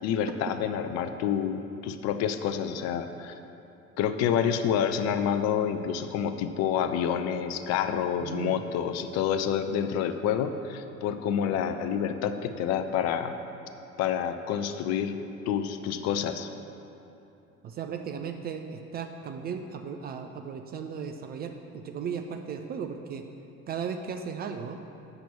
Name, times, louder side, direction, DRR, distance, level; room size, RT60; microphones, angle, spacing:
voice 1, 0.0-3.3 4.0-13.3 14.0-15.2 15.5-16.5, left 8 dB, 40° left, 9 dB, 0.5 m, -28 dB
voice 2, 8.2-8.6 17.6-23.3 23.7-24.8, right 6 dB, 25° right, 5 dB, 0.4 m, -36 dB
7.9 x 5.9 x 6.9 m, 2.9 s
figure-of-eight pair, 65°, 42 cm